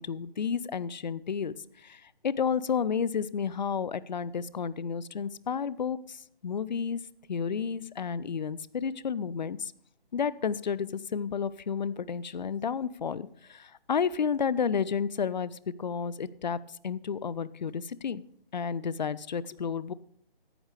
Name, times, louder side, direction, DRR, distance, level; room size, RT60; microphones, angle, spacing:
voice 1, 0.0-1.5 1.8-7.0 7.3-9.7 10.1-16.6 16.8-18.2 18.5-19.9, left 6 dB, 50° left, 19 dB, 0.5 m, -31 dB
14.0 x 9.9 x 3.4 m, 0.65 s
figure-of-eight pair, 150°, 30 cm